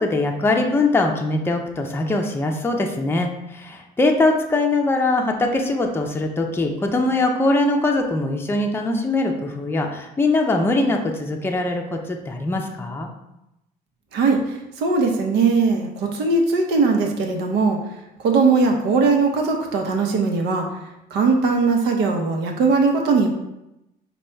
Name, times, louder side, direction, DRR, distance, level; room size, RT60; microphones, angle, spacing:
voice 1, 0.0-13.1, left 2 dB, 15° left, 2 dB, 0.5 m, -22 dB
voice 2, 14.1-17.8 18.2-20.7 21.1-23.3, right 4 dB, 80° right, 2 dB, 0.9 m, -19 dB
5.1 x 2.3 x 4.4 m, 0.88 s
cardioid pair, 110°, 17 cm